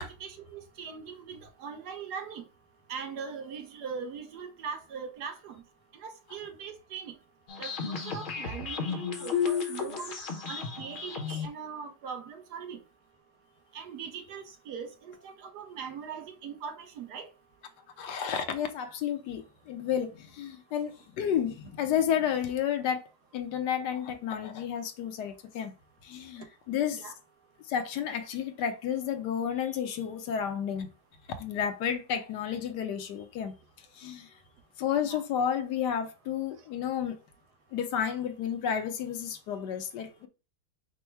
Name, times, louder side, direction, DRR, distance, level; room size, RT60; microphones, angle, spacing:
voice 1, 0.0-2.4 2.9-5.6 5.9-7.1 7.6-10.1 10.5-12.8 13.7-17.3 26.9-27.1 35.1-35.2, right 6 dB, 70° right, 1.3 m, -41 dB
sound 1, 7.5-11.5, left 6 dB, 45° left, 0.7 m, -33 dB
voice 2, 18.0-23.0 23.3-25.7 26.0-27.1 27.7-30.9 31.3-33.5 33.9-34.3 34.8-37.2 37.7-40.3, left 8 dB, 75° left, 1.3 m, -31 dB
5.3 x 2.1 x 4.4 m
omnidirectional pair, 1.8 m